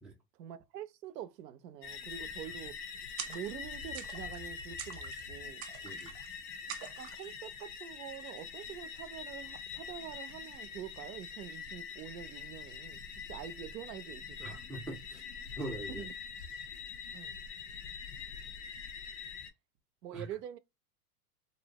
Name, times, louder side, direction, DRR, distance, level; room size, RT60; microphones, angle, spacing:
voice 1, 0.3-2.8 3.3-5.6 7.0-14.6 15.9-16.1 17.1-17.4 20.0-20.6, right 10 dB, 80° right, 0.6 m, -45 dB
sound 1, 1.8-19.5, left 6 dB, 75° left, 0.8 m, -44 dB
sound 2, 3.2-3.7 3.9-4.4 4.8-5.3 5.6-6.3 6.7-7.3, right 9 dB, 45° right, 0.7 m, -45 dB
voice 2, 14.4-15.2 15.6-16.0 20.1-20.3, right 2 dB, ahead, 0.4 m, -42 dB
2.7 x 2.1 x 2.7 m
hypercardioid pair, 105°, 48 cm